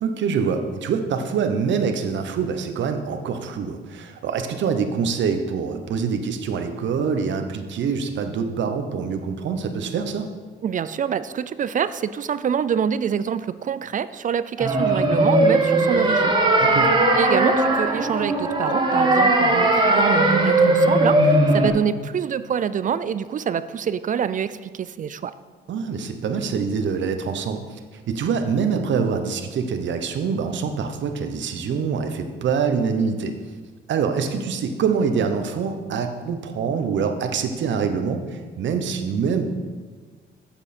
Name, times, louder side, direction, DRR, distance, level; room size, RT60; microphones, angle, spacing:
voice 1, 0.0-10.3 16.6-16.9 25.7-33.3 33.9-39.5, right 6 dB, 70° right, 7 dB, 0.9 m, -25 dB
voice 2, 10.6-16.3 17.2-25.3, right 8 dB, 40° right, 14 dB, 0.4 m, -26 dB
sound 1, 14.6-21.7, right 2 dB, 20° right, 1.3 m, -18 dB
8.6 x 7.3 x 4.3 m, 1.4 s
cardioid pair, 90°, 20 cm